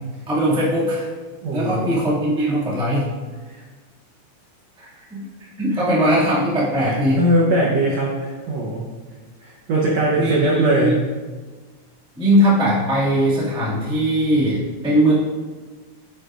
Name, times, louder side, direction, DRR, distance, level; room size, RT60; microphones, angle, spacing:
voice 1, 0.3-1.1 1.5-3.0 4.8-5.2 5.6-7.2 10.1-10.9 12.2-15.1, equal, 5° right, -8 dB, 0.4 m, -20 dB
voice 2, 1.4-2.0 3.5-3.6 5.7-5.8 6.7-8.8 9.4-11.0, right 1 dB, 85° right, -3 dB, 1.4 m, -21 dB
9.8 x 8.4 x 2.5 m, 1.4 s
omnidirectional pair, 4.5 m